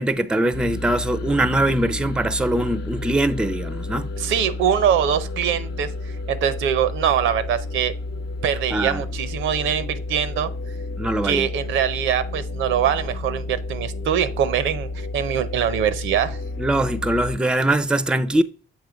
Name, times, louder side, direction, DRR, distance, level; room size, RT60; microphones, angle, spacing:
voice 1, 0.0-4.1 8.7-9.0 11.0-11.5 16.6-18.4, right 1 dB, 5° right, 0.4 m, -22 dB
sound 1, 0.5-17.4, left 2 dB, 60° left, 0.9 m, -31 dB
voice 2, 4.2-7.9 8.4-10.5 11.2-16.4, right 9 dB, 85° right, 0.7 m, -23 dB
7.4 x 3.0 x 5.0 m
cardioid pair, 90°, 20 cm